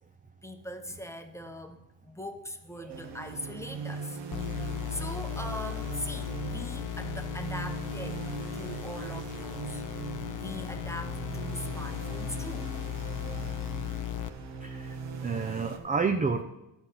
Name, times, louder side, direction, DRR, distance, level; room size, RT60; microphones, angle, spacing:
voice 1, 0.4-4.2 4.5-8.2 8.5-9.8 10.3-12.7, left 1 dB, 5° left, 6 dB, 0.8 m, -41 dB
sound 1, 2.9-15.8, right 5 dB, 70° right, 1.2 m, -40 dB
sound 2, 4.3-14.3, left 13 dB, 45° left, 0.5 m, -37 dB
voice 2, 14.6-15.0 15.2-16.4, right 5 dB, 20° right, 5 dB, 0.5 m, -29 dB
12.5 x 4.4 x 5.6 m, 0.95 s
cardioid pair, 95°, 45 cm